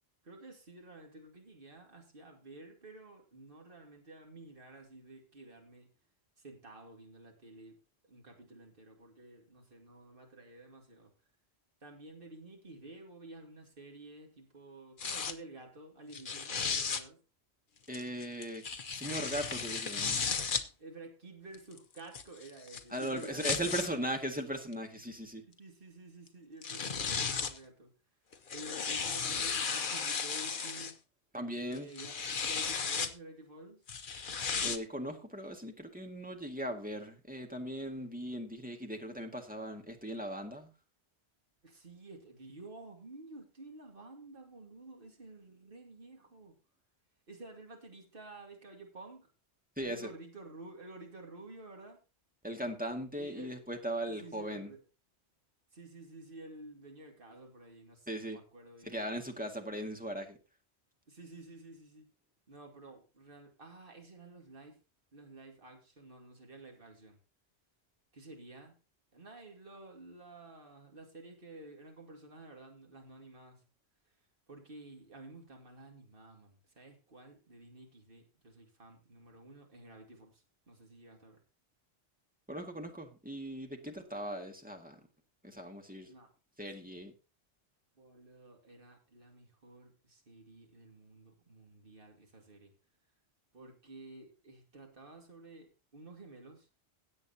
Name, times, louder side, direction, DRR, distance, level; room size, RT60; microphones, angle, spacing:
voice 1, 0.2-5.9 6.4-7.8 8.0-11.1 11.8-17.2 20.8-24.0 25.4-27.9 28.5-31.0 31.7-33.8 41.6-46.5 47.3-49.3 49.8-52.0 53.2-53.7 54.0-54.8 55.7-59.0 61.1-62.1 62.5-64.8 65.1-67.2 68.1-68.8 69.1-73.7 74.5-81.4 86.1-86.3 88.0-92.7 93.5-96.7, right 2 dB, 55° right, 2 dB, 2.7 m, -52 dB
sound 1, 15.0-15.3 16.1-17.0 17.9-20.6 21.5-23.9 24.7-24.8 26.3-26.4 26.6-27.6 28.3-30.9 31.7-33.1 33.9-34.8, left 5 dB, 50° left, 1.1 m, -35 dB
voice 2, 17.9-20.2 22.9-25.4 31.3-31.9 34.6-40.7 49.8-50.1 52.4-54.7 58.1-58.4 58.8-60.4 82.5-85.0 85.4-86.1 86.6-87.1, right 1 dB, 10° right, 3 dB, 1.8 m, -38 dB
17.5 x 8.0 x 2.8 m, 0.30 s
omnidirectional pair, 1.1 m